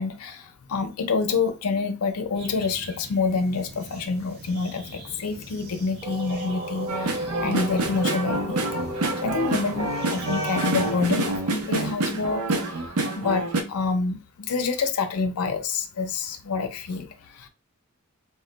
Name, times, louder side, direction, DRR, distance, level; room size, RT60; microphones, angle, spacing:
voice 1, 0.0-8.7 9.2-12.9 13.2-17.5, left 4 dB, 80° left, 0.6 m, -27 dB
sound 1, 2.3-11.1, equal, 50° right, 0.9 m, -43 dB
sound 2, 6.0-11.7, equal, 25° right, 0.5 m, -35 dB
sound 3, 6.9-13.6, right 2 dB, 75° right, 0.6 m, -27 dB
2.2 x 2.1 x 3.8 m
head